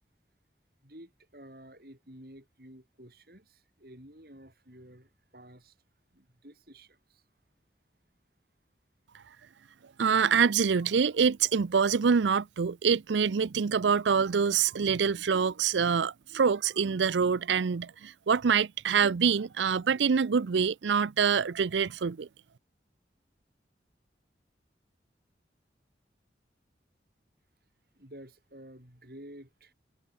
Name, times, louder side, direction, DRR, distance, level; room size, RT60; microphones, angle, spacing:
voice 1, 0.8-5.7 6.1-7.2 27.9-29.7, right 1 dB, 55° right, 6.1 m, -51 dB
voice 2, 10.0-22.3, right 6 dB, 90° right, 0.5 m, -25 dB
head